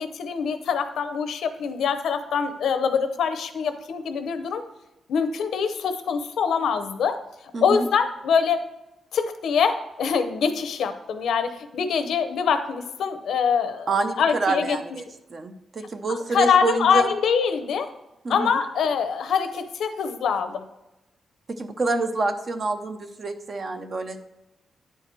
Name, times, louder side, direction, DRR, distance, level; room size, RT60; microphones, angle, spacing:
voice 1, 0.0-4.6 5.1-7.2 7.6-8.6 9.1-14.8 16.1-17.9 18.3-20.6, left 6 dB, 85° left, 9 dB, 0.7 m, -24 dB
voice 2, 7.5-7.9 13.9-15.0 15.3-17.1 18.2-18.5 21.5-24.2, right 3 dB, 40° right, 8 dB, 0.7 m, -27 dB
9.8 x 4.7 x 4.6 m, 0.98 s
wide cardioid pair, 165°, 0 cm